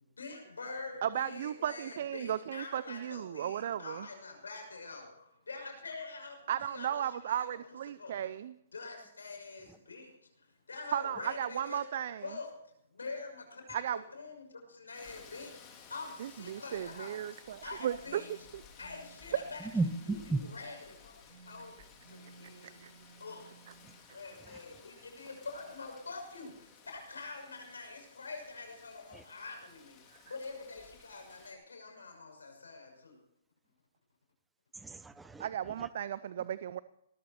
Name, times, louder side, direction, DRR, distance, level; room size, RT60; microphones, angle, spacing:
voice 1, 0.2-5.1 5.5-8.3 8.7-10.1 10.4-11.8 12.2-12.5 12.9-17.2 17.6-18.3 18.8-19.7 20.5-21.8 22.1-22.8 23.2-23.5 24.1-33.2, left 3 dB, 85° left, 3 dB, 6.1 m, -45 dB
voice 2, 1.0-4.1 6.5-8.5 10.9-12.3 13.7-14.0 16.2-18.2 18.5-18.6 22.6-22.9 35.4-36.8, right 10 dB, 55° right, 17 dB, 0.5 m, -35 dB
Rain, 14.9-31.5, left 6 dB, 25° left, 4.0 m, -57 dB
sound 1, 17.9-20.8 21.2-24.0, right 5 dB, 80° right, 4.3 m, -59 dB
voice 3, 19.6-20.4 23.8-23.9 24.4-24.6 29.1-29.2 34.7-35.9, right 3 dB, 5° right, 15 dB, 0.9 m, -36 dB
18.5 x 14.5 x 4.4 m, 0.80 s
hypercardioid pair, 135°, 0 cm